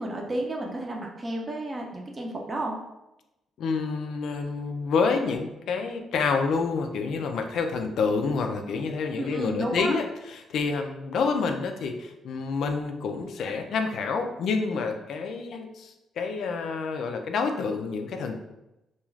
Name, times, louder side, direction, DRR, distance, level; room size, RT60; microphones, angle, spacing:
voice 1, 0.0-2.8 9.2-10.0, right 1 dB, 30° right, 0 dB, 0.6 m, -32 dB
voice 2, 3.6-18.4, left 4 dB, 70° left, 5 dB, 0.3 m, -28 dB
2.3 x 2.3 x 3.1 m, 0.93 s
cardioid pair, 90°, 0 cm